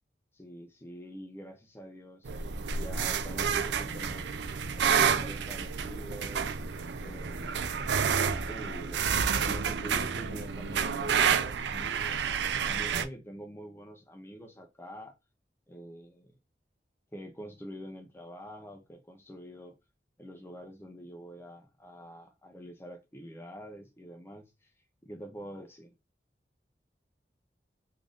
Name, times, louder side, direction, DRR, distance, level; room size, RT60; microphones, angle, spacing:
voice 1, 0.3-2.3 2.7-4.3 4.8-6.5 7.0-8.0 8.3-9.0 9.4-12.3 12.6-15.1 15.7-16.3 17.1-19.8 20.2-24.7 25.0-25.9, equal, 15° left, 0.5 m, -46 dB
sound 1, 2.2-13.0, right 6 dB, 80° right, 0.4 m, -29 dB
3.7 x 2.5 x 3.4 m
head